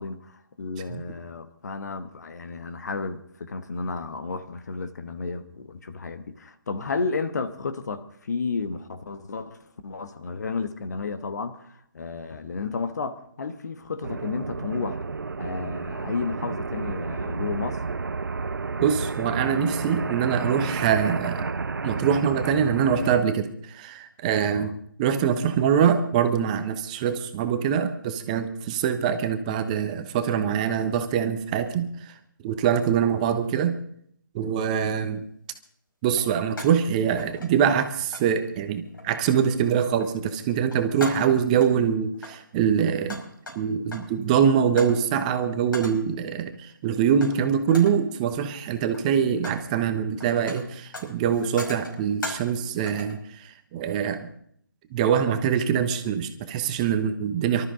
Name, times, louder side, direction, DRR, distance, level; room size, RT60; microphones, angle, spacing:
voice 1, 0.0-15.0 15.4-17.8 24.5-24.7, left 4 dB, 50° left, 1.4 m, -32 dB
sound 1, 14.0-23.2, right 4 dB, 65° right, 0.7 m, -31 dB
voice 2, 18.8-21.5 21.8-32.1 32.4-33.8 34.3-35.2 36.0-43.2 43.5-54.3 54.9-57.7, right 8 dB, 20° right, 1.1 m, -24 dB
sound 2, 34.8-35.0 36.1-36.9 37.2-37.8 38.1-38.3 38.9-39.3 39.7-40.2 40.5-41.7 42.1-44.2 44.8-45.0 45.7-46.1 47.2-47.4 47.7-48.1 48.8-49.7 49.9-52.6 52.9-53.2, left 2 dB, 70° left, 5.3 m, -39 dB
24.0 x 13.0 x 3.8 m
figure-of-eight pair, 145°, 11 cm